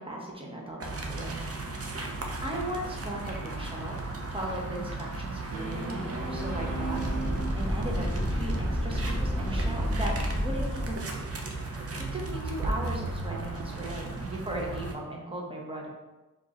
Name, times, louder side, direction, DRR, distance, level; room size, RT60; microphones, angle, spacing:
voice 1, 0.0-2.0 2.4-4.0 4.3-7.0 7.3-11.5 11.7-15.9, right 1 dB, 15° right, -2 dB, 1.2 m, -37 dB
sound 1, 0.8-14.9, right 2 dB, 45° right, 0.7 m, -36 dB
sound 2, 3.1-3.4 5.5-7.4, right 4 dB, 80° right, 1.0 m, -37 dB
sound 3, 6.1-10.9, equal, 10° left, 0.8 m, -30 dB
4.6 x 2.9 x 3.8 m, 1.1 s
cardioid pair, 60°, 33 cm